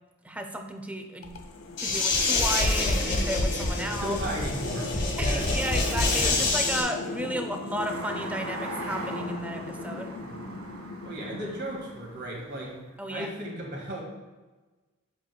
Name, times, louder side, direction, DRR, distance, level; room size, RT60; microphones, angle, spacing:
voice 1, 0.2-1.3 1.8-4.2 5.2-10.1 13.0-13.3, right 1 dB, 5° right, 5 dB, 0.5 m, -33 dB
sound 1, 1.2-12.3, left 3 dB, 85° left, 0.6 m, -38 dB
sound 2, 1.8-6.8, left 2 dB, 55° left, 1.6 m, -26 dB
voice 2, 3.7-5.5 6.1-6.4 10.2-10.3 11.0-12.8 13.1-14.0, right 1 dB, 55° right, -2 dB, 1.7 m, -35 dB
sound 3, 7.8-12.8, right 2 dB, 80° right, 1.3 m, -41 dB
7.5 x 6.7 x 2.2 m, 1.2 s
head